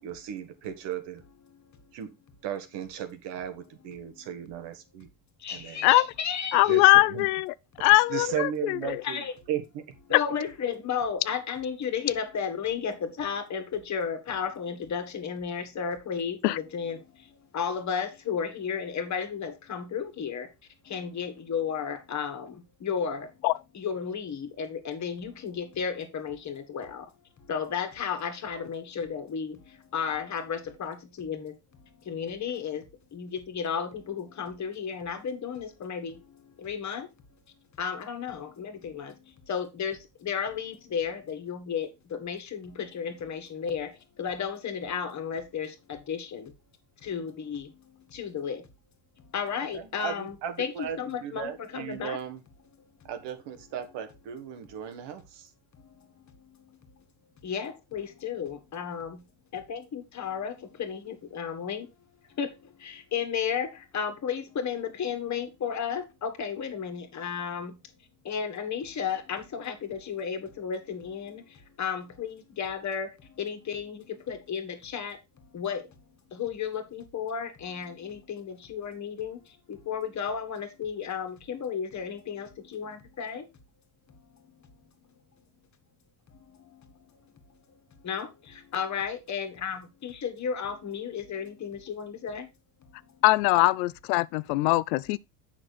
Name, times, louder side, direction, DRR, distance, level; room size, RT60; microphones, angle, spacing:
voice 1, 0.0-1.2 1.9-2.1 2.4-5.1 5.5-5.9 6.7-7.3 8.1-9.6 49.6-52.4 53.0-55.5, right 9 dB, 55° right, 1.8 m, -36 dB
voice 2, 5.4-6.8 9.0-9.3 10.1-17.0 17.5-20.5 20.9-23.3 23.7-27.1 27.5-29.6 29.9-31.5 32.1-32.8 33.1-36.2 36.6-37.1 37.8-39.1 39.5-43.9 44.2-46.5 47.0-47.7 48.1-48.6 49.3-52.2 57.4-59.2 59.5-60.5 60.8-61.9 62.4-62.5 62.8-63.7 63.9-67.7 68.3-71.4 71.8-73.1 73.4-75.2 75.5-75.8 76.3-79.4 79.7-83.5 88.0-88.3 88.7-92.5, left 7 dB, 35° left, 1.9 m, -33 dB
voice 3, 6.5-7.5 7.8-9.0 16.4-16.6 23.4-23.6 93.2-95.2, left 20 dB, 75° left, 0.5 m, -21 dB
7.7 x 6.1 x 4.2 m
supercardioid pair, 110°, 49 cm